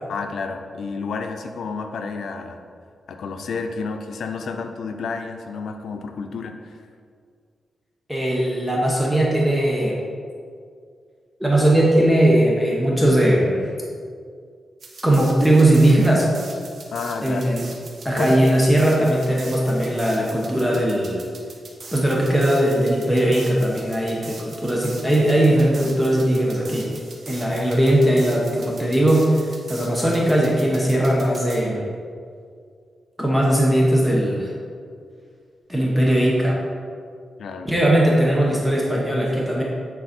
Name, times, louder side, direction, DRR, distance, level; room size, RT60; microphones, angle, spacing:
voice 1, 0.1-2.6 3.1-6.7 16.9-17.4 18.2-18.3 37.4-37.7, left 4 dB, 80° left, 5 dB, 0.6 m, -30 dB
voice 2, 8.1-10.0 11.4-13.6 15.0-16.3 17.2-17.7 18.0-21.3 21.9-26.9 27.3-29.4 29.7-31.8 33.2-34.5 35.7-36.6 37.6-39.6, right 1 dB, 5° right, -3 dB, 1.0 m, -19 dB
sound 1, 14.8-31.6, right 3 dB, 55° right, 1.1 m, -42 dB
9.1 x 4.0 x 4.4 m, 2.1 s
wide cardioid pair, 125°, 0 cm